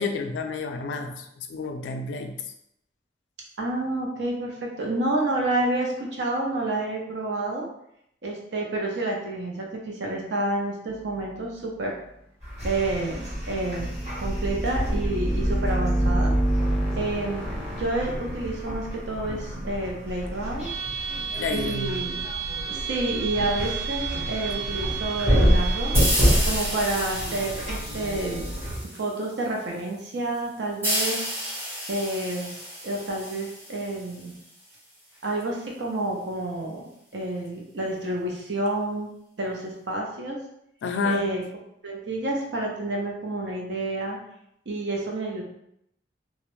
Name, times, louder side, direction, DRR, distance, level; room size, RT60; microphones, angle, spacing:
voice 1, 0.0-2.4 21.4-22.0 40.8-41.3, left 4 dB, 75° left, 6 dB, 0.3 m, -30 dB
voice 2, 3.6-7.7 8.2-12.0 12.6-16.3 17.0-17.4 17.7-20.7 21.5-22.2 22.7-25.9 26.4-28.5 28.9-31.2 31.9-32.5 32.8-34.3 35.2-36.8 37.1-39.1 39.4-40.4 41.0-41.4 41.8-44.2 44.7-45.4, right 2 dB, 70° right, -1 dB, 0.6 m, -29 dB
sound 1, 12.4-28.8, right 1 dB, 35° right, 1.2 m, -28 dB
sound 2, 13.1-17.8, right 1 dB, 5° left, 0.4 m, -27 dB
sound 3, 25.9-29.3 30.8-34.3, equal, 10° right, 0.8 m, -31 dB
2.3 x 2.0 x 3.0 m, 0.75 s
head